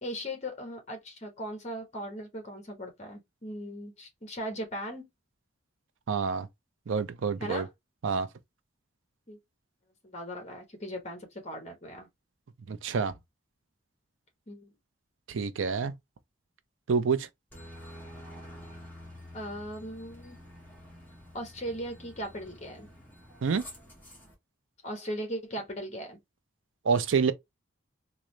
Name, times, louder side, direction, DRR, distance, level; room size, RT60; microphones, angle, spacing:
voice 1, 0.0-5.1 7.4-7.7 9.3-9.4 10.0-12.1 14.5-14.7 19.3-20.4 21.3-22.9 24.8-26.2, equal, 35° left, 1.1 m, -38 dB
voice 2, 6.1-6.5 6.9-7.6 8.0-8.3 12.7-13.1 15.3-15.9 16.9-17.3 23.4-23.6 26.8-27.3, right 5 dB, 80° right, 0.5 m, -27 dB
Aircraft, 17.5-24.3, left 1 dB, 10° left, 1.2 m, -48 dB
3.7 x 2.1 x 3.1 m
head